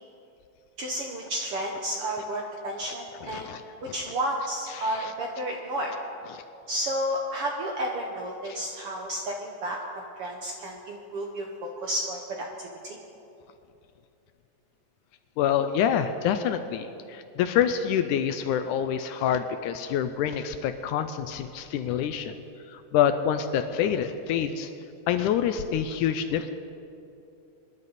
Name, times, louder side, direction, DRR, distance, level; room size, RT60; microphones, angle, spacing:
voice 1, 0.8-3.5 3.8-5.9 6.7-13.0, right 1 dB, 65° right, 1 dB, 1.5 m, -32 dB
voice 2, 3.2-3.6 3.9-4.0 4.7-5.1 6.3-6.4 8.5-8.6 15.4-22.4 22.7-24.7 25.1-26.5, left 9 dB, 80° left, 9 dB, 1.9 m, -27 dB
24.5 x 11.0 x 4.1 m, 2.7 s
omnidirectional pair, 3.8 m